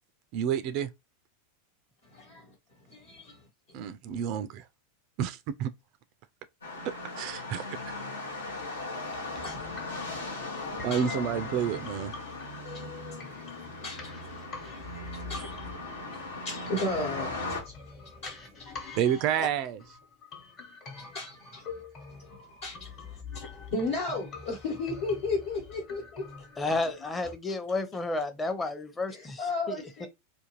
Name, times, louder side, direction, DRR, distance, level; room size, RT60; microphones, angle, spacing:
voice 1, 0.3-0.9 3.7-4.6 5.2-5.7 6.8-7.9 9.4-9.5 10.8-12.1 18.9-19.8, right 9 dB, 50° right, 0.3 m, -30 dB
voice 2, 2.0-2.5 2.9-3.4 3.7-3.8 9.0-9.6 10.6-11.0 12.6-15.7 16.4-19.2 20.9-21.7 22.1-26.5 29.1-30.1, left 2 dB, 65° left, 1.1 m, -36 dB
sound 1, 6.6-17.6, left 2 dB, 85° left, 0.9 m, -38 dB
sound 2, 9.3-27.3, left 4 dB, 40° left, 1.1 m, -45 dB
voice 3, 26.6-29.8, left 2 dB, 20° left, 0.6 m, -31 dB
2.5 x 2.3 x 3.0 m
hypercardioid pair, 90°, 0 cm